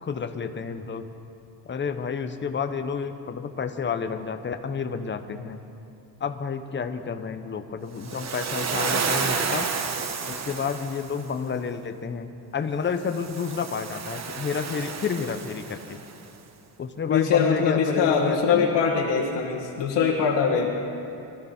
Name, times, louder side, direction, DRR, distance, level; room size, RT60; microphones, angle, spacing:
voice 1, 0.0-1.0 1.7-5.6 6.2-9.7 10.3-12.3 12.5-16.0 16.8-18.7, left 6 dB, 25° left, 8 dB, 0.8 m, -30 dB
Waves surf, 8.0-11.2 13.0-16.1, right 5 dB, 40° right, 1.1 m, -30 dB
voice 2, 17.1-20.7, left 6 dB, 90° left, -3 dB, 1.9 m, -22 dB
23.0 x 13.5 x 4.3 m, 2.7 s
cardioid pair, 135°, 42 cm